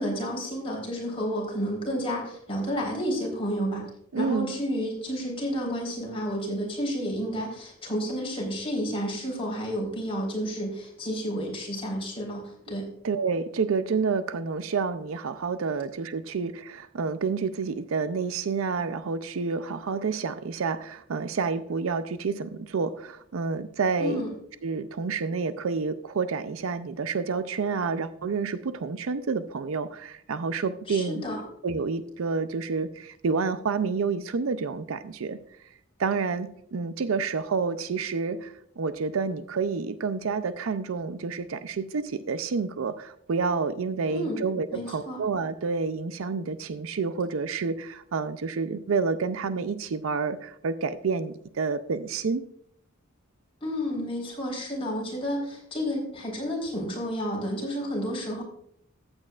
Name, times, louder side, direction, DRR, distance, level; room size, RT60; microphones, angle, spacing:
voice 1, 0.0-3.9 4.2-12.9 24.0-24.3 30.9-31.4 44.1-44.4 44.7-45.2 53.6-58.4, equal, 30° left, -2 dB, 4.0 m, -31 dB
voice 2, 4.1-4.6 13.0-24.2 24.6-31.2 31.6-35.4 36.0-52.4, right 4 dB, 70° right, 13 dB, 0.5 m, -29 dB
14.5 x 8.8 x 2.4 m, 0.69 s
head